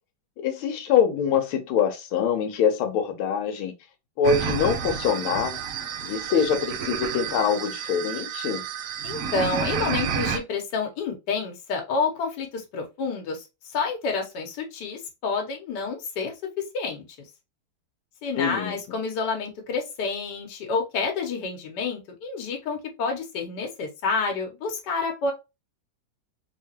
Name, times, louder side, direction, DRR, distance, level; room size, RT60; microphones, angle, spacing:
voice 1, 0.4-3.7 4.2-5.6 6.0-8.6 18.4-18.8, left 7 dB, 85° left, 1.6 m, -24 dB
sound 1, 4.2-10.4, right 7 dB, 80° right, 0.7 m, -30 dB
voice 2, 9.0-17.0 18.2-25.3, left 4 dB, 60° left, 1.5 m, -29 dB
3.6 x 2.9 x 2.8 m
omnidirectional pair, 2.2 m